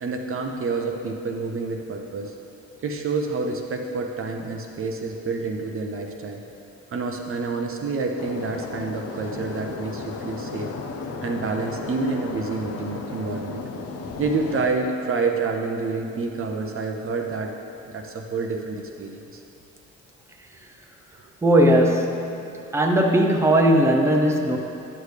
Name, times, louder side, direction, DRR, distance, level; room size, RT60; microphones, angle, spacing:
voice 1, 0.0-2.3 2.8-6.4 6.9-10.7 11.2-13.6 14.2-17.5 17.9-19.4, right 4 dB, 45° right, 2 dB, 0.6 m, -28 dB
sound 1, 8.2-14.7, left 4 dB, 55° left, 0.7 m, -34 dB
voice 2, 21.4-22.2 22.7-24.6, right 1 dB, 10° right, 2 dB, 0.7 m, -18 dB
9.6 x 6.5 x 3.3 m, 2.7 s
cardioid pair, 90°, 30 cm